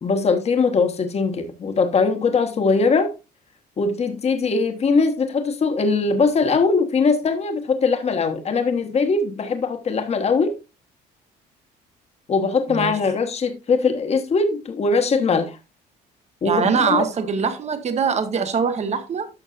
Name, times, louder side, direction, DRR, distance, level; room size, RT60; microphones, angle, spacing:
voice 1, 0.0-3.1 3.8-10.5 12.3-15.6 16.4-17.0, left 4 dB, 40° left, 1.4 m, -21 dB
voice 2, 16.4-19.3, right 6 dB, 40° right, 1.3 m, -22 dB
11.5 x 6.4 x 2.6 m
cardioid pair, 110°, 17 cm